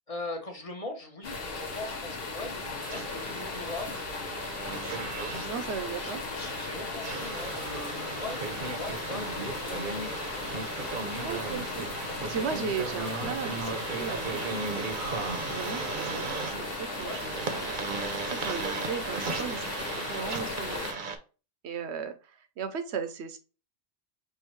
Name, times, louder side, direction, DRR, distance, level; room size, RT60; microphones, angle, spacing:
voice 1, 0.1-4.7 5.9-10.4 17.0-17.2, left 2 dB, 35° left, 3 dB, 0.8 m, -41 dB
sound 1, 1.2-20.9, left 3 dB, 60° left, 1.1 m, -37 dB
sound 2, 2.8-21.2, right 4 dB, 55° right, 0.8 m, -36 dB
voice 2, 5.4-6.2 11.2-14.9 15.5-16.3 16.6-17.8 18.3-20.9 21.6-23.4, right 6 dB, 85° right, 9 dB, 0.9 m, -37 dB
5.6 x 2.7 x 3.0 m, 0.34 s
omnidirectional pair, 1.1 m